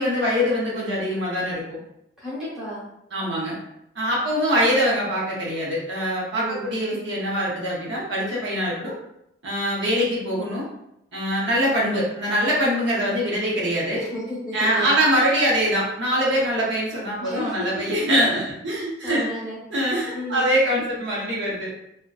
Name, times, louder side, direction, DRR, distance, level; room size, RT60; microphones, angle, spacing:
voice 1, 0.0-1.8 3.1-3.6 3.9-9.0 9.4-10.6 11.1-14.1 14.5-19.3 19.7-21.7, equal, 70° right, -5 dB, 0.7 m, -23 dB
voice 2, 2.2-2.9 6.3-6.7 14.0-15.0 17.2-18.0 19.0-19.6 20.1-20.5, equal, 5° right, -10 dB, 1.0 m, -33 dB
2.5 x 2.1 x 2.3 m, 0.78 s
head